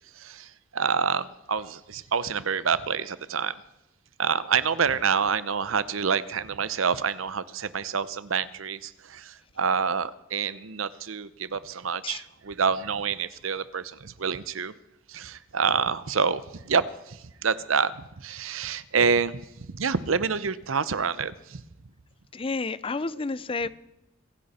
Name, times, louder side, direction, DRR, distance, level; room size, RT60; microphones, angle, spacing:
voice 1, 0.2-3.6 4.2-14.7 15.1-19.4 19.7-21.6, right 6 dB, 85° right, 16 dB, 0.8 m, -27 dB
voice 2, 22.3-23.7, left 3 dB, 25° left, 17 dB, 0.5 m, -30 dB
25.0 x 10.5 x 4.3 m, 0.90 s
head